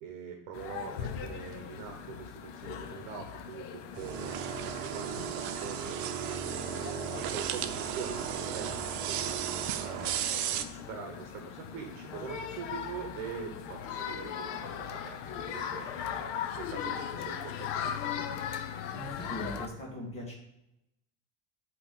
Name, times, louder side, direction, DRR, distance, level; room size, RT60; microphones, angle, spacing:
voice 1, 0.0-4.3 4.6-6.7 7.2-9.9 10.5-16.3 16.6-18.2, right 6 dB, 60° right, 4 dB, 1.2 m, -44 dB
sound 1, 0.5-19.7, left 8 dB, 50° left, 0.6 m, -39 dB
sound 2, 4.0-10.6, right 10 dB, 90° right, 0.7 m, -34 dB
voice 2, 18.9-20.3, left 1 dB, 15° left, -2 dB, 1.4 m, -40 dB
8.5 x 3.0 x 5.7 m, 0.87 s
cardioid pair, 175°, 44 cm